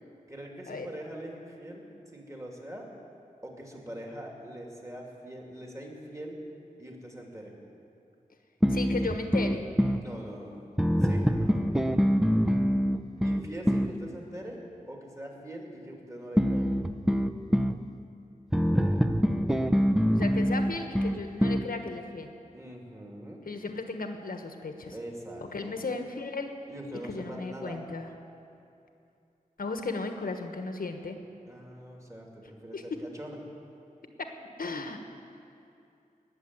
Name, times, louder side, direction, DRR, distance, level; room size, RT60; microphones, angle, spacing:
voice 1, 0.3-1.9 2.1-2.9 3.4-6.4 6.8-7.5 10.0-10.7 11.0-11.6 13.2-14.6 14.9-16.7 22.5-23.4 24.9-25.7 26.7-27.8 31.5-33.4, right 1 dB, 20° right, 0 dB, 2.6 m, -42 dB
sound 1, 8.6-10.0 10.8-14.0 16.4-17.8 18.5-21.7, equal, 5° right, 0.6 m, -25 dB
voice 2, 8.7-9.7 20.1-22.3 23.4-24.9 25.4-26.5 27.1-28.1 29.6-31.2 32.7-33.0 34.2-34.3 34.6-35.0, left 3 dB, 80° left, 5 dB, 1.3 m, -35 dB
18.5 x 7.2 x 9.6 m, 2.7 s
wide cardioid pair, 80°, 15 cm